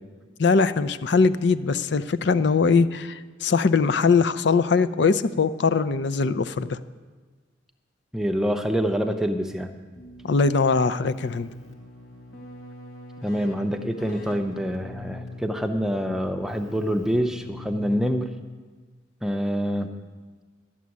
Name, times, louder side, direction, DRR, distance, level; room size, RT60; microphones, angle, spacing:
voice 1, 0.4-6.8 10.2-11.5, left 4 dB, 60° left, 14 dB, 0.5 m, -21 dB
voice 2, 8.1-9.7 13.2-18.3 19.2-19.9, equal, ahead, 5 dB, 0.6 m, -26 dB
Keyboard (musical), 9.9-18.6, left 2 dB, 85° left, 2.1 m, -43 dB
12.5 x 7.4 x 9.5 m, 1.4 s
head